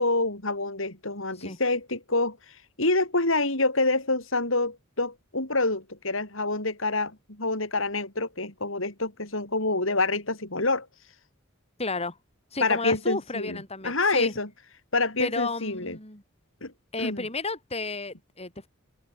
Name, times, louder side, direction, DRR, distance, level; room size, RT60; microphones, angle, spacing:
voice 1, 0.0-2.4 2.8-10.9 12.6-14.5 14.9-16.0 16.6-16.7 17.0-17.2, left 2 dB, 70° left, 7.4 m, -27 dB
voice 2, 11.8-12.2 12.5-14.3 15.2-16.2 16.9-18.7, left 3 dB, 30° left, 7.6 m, -32 dB
open air
head